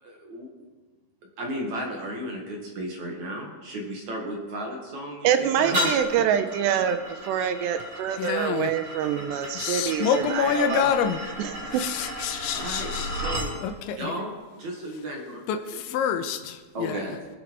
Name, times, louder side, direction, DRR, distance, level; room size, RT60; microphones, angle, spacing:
voice 1, 0.0-0.5 1.4-6.1 12.5-15.8 16.3-17.3, right 1 dB, 50° right, 0 dB, 2.5 m, -35 dB
voice 2, 5.2-10.9 11.4-11.7, right 9 dB, 80° right, 9 dB, 2.7 m, -26 dB
sound 1, 5.7-13.5, equal, 25° right, 5.0 m, -34 dB
voice 3, 8.2-8.7 9.6-11.2 11.8-13.1 13.6-14.0 15.5-16.6 16.8-17.0, left 8 dB, 85° left, 8 dB, 3.2 m, -26 dB
24.5 x 8.8 x 4.8 m, 1.3 s
omnidirectional pair, 5.4 m